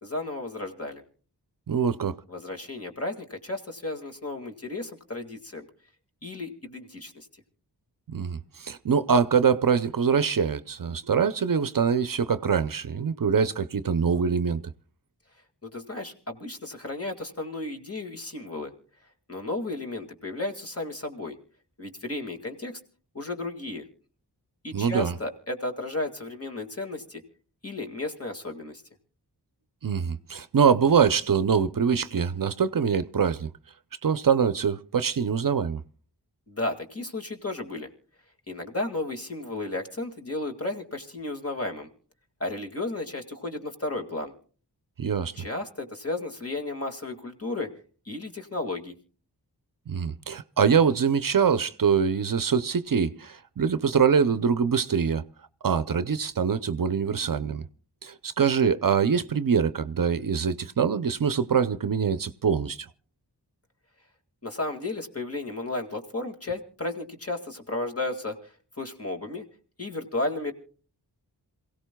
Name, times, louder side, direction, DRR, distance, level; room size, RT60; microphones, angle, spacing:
voice 1, 0.0-1.0 2.3-5.7 6.2-7.3 15.6-18.7 19.3-21.4 21.8-22.7 23.1-23.8 24.6-27.2 27.6-28.8 36.5-37.9 38.5-41.9 42.4-44.3 45.4-47.7 48.1-48.9 64.4-69.5 69.8-70.5, left 2 dB, 35° left, 2.1 m, -33 dB
voice 2, 1.7-2.2 8.1-14.6 24.7-25.1 29.8-33.5 34.0-35.8 45.0-45.3 49.9-55.2 55.6-57.6 58.0-62.9, right 6 dB, 55° right, 0.6 m, -24 dB
27.5 x 16.5 x 2.2 m
wide cardioid pair, 80°, 40 cm